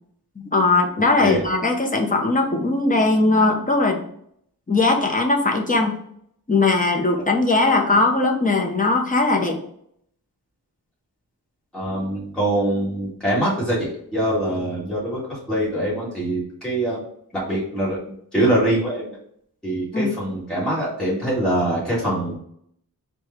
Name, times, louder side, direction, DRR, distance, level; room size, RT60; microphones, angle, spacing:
voice 1, 0.4-4.0 4.7-6.0 6.5-9.6 19.9-20.1, left 3 dB, 20° left, 2 dB, 0.8 m, -19 dB
voice 2, 11.7-17.0 17.3-19.2 19.6-22.4, right 1 dB, ahead, -8 dB, 1.8 m, -24 dB
4.7 x 2.3 x 4.3 m, 0.69 s
wide cardioid pair, 140°, 38 cm